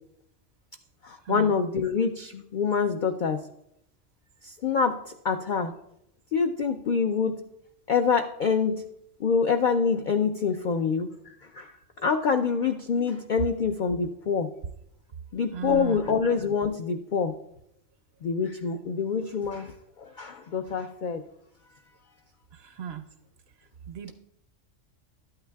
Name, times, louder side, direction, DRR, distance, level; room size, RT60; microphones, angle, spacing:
voice 1, 1.0-3.4 4.4-5.7 6.3-7.4 7.9-8.8 9.2-11.1 11.5-14.5 15.3-17.3 18.2-19.7 20.0-21.2, left 5 dB, 70° left, 7 dB, 0.4 m, -26 dB
voice 2, 15.5-16.0 22.8-23.0 23.9-24.2, right 8 dB, 65° right, 10 dB, 0.7 m, -35 dB
12.5 x 8.9 x 2.3 m, 0.80 s
omnidirectional pair, 1.3 m